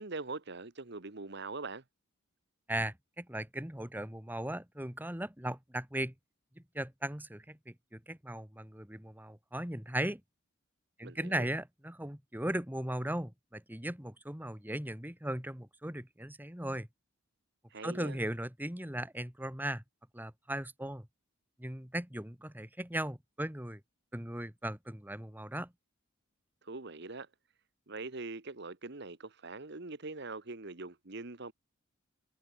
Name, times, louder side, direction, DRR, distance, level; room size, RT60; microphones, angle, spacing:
voice 1, 0.0-1.8 11.0-11.5 17.7-18.2 26.6-27.3 27.9-31.5, right 3 dB, 55° right, 1.4 m, -42 dB
voice 2, 2.7-6.1 6.6-10.2 11.0-16.9 17.8-19.8 20.1-21.1 21.6-23.8 24.1-25.7, right 1 dB, 10° right, 2.5 m, -38 dB
head